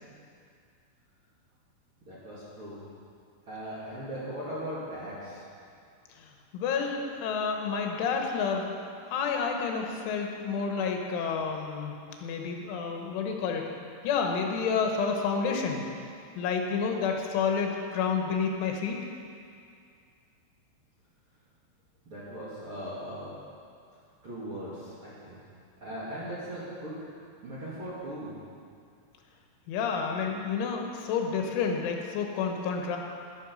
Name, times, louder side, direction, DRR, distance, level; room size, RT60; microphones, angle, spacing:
voice 1, 2.1-2.8 3.5-5.4 22.0-23.3 24.2-25.4 25.8-27.0 27.4-28.4, right 1 dB, 40° right, -9 dB, 2.3 m, -39 dB
voice 2, 6.5-8.7 9.0-13.7 14.0-15.8 16.4-19.0 29.7-33.0, left 5 dB, 90° left, 2 dB, 3.5 m, -29 dB
12.5 x 11.5 x 5.4 m, 2.3 s
omnidirectional pair, 5.5 m